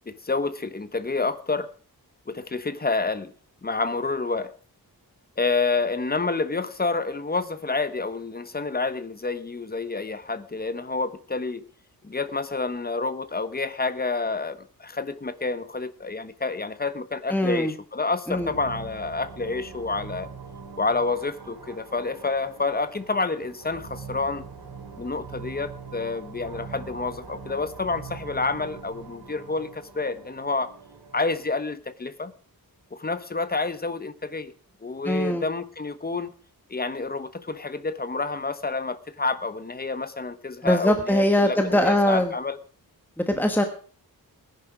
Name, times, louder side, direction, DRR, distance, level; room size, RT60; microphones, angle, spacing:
voice 1, 0.1-1.7 2.3-3.3 3.6-4.5 5.4-11.6 12.0-20.3 20.8-24.4 25.0-30.7 31.1-32.3 32.9-34.5 34.8-36.3 36.7-42.6, left 3 dB, 25° left, 1.1 m, -28 dB
voice 2, 17.3-17.7 18.3-18.5 35.0-35.4 40.6-42.3 43.2-43.6, left 1 dB, 5° left, 1.3 m, -22 dB
sound 1, 18.3-31.6, right 5 dB, 85° right, 2.8 m, -43 dB
19.0 x 10.5 x 5.0 m
wide cardioid pair, 170°, 37 cm